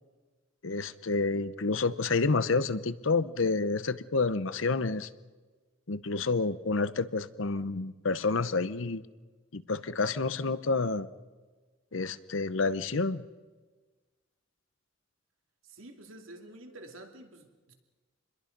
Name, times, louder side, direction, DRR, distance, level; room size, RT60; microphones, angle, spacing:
voice 1, 0.6-5.1 5.9-9.0 9.5-11.1 11.9-13.2, left 3 dB, 70° left, 14 dB, 0.9 m, -29 dB
voice 2, 15.6-17.7, right 1 dB, 80° right, 3 dB, 2.8 m, -49 dB
28.0 x 21.5 x 5.3 m, 1.3 s
head